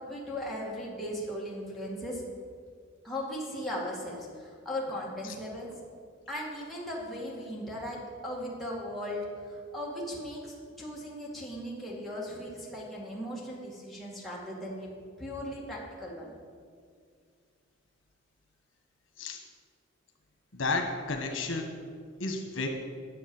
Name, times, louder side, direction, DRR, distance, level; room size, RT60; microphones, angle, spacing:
voice 1, 0.1-2.2 3.0-5.8 6.3-14.9 15.2-16.3, equal, ahead, -6 dB, 2.1 m, -37 dB
voice 2, 20.5-21.8 22.2-22.7, left 3 dB, 75° left, 4 dB, 1.3 m, -32 dB
10.5 x 7.2 x 7.1 m, 2.1 s
head